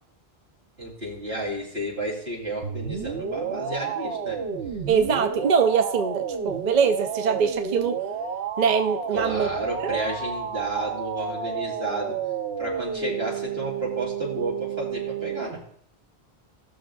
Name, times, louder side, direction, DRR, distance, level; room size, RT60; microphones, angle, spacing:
voice 1, 0.8-4.4 9.1-12.2 12.6-15.6, right 1 dB, 70° right, -4 dB, 3.4 m, -32 dB
sound 1, 2.6-15.4, right 6 dB, 85° right, 1.0 m, -31 dB
voice 2, 4.9-8.0 8.6-9.5 9.8-10.0, right 6 dB, 50° right, 6 dB, 0.6 m, -23 dB
18.0 x 6.3 x 2.3 m, 0.63 s
omnidirectional pair, 1.1 m